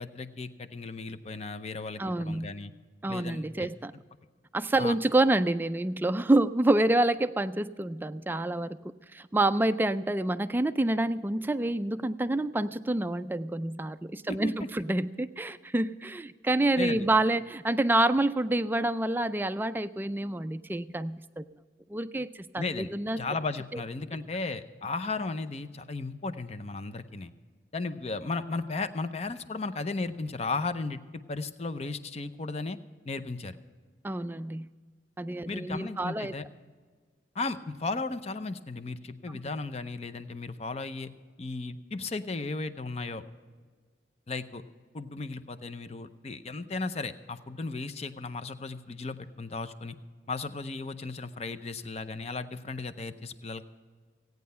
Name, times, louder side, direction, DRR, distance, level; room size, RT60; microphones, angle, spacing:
voice 1, 0.0-2.7 3.1-3.7 4.8-5.0 14.3-14.5 16.8-17.1 22.6-22.9 23.2-27.3 27.7-32.8 33.1-33.6 35.5-36.5 37.3-41.1 41.4-43.2 44.3-44.6 44.9-50.0 50.3-53.6, left 3 dB, 35° left, 11 dB, 0.6 m, -35 dB
voice 2, 2.0-2.5 3.0-3.9 4.5-8.8 9.1-21.4 21.9-23.2 23.7-23.8 34.0-34.7 35.2-36.3 39.3-39.4, right 2 dB, 10° right, 12 dB, 0.3 m, -27 dB
16.0 x 9.4 x 5.5 m, 1.5 s
head